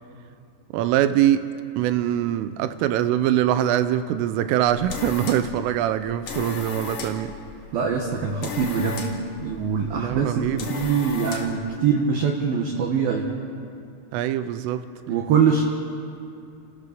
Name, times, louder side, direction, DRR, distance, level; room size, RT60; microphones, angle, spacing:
voice 1, 0.7-1.5 1.8-7.4 9.9-10.7 14.1-14.9, right 11 dB, 85° right, 3.3 m, -23 dB
sound 1, 4.5-11.7, left 4 dB, 60° left, 1.6 m, -36 dB
voice 2, 7.7-9.0 9.4-13.3 15.1-15.6, right 6 dB, 65° right, 2.6 m, -23 dB
30.0 x 14.5 x 6.8 m
omnidirectional pair, 5.8 m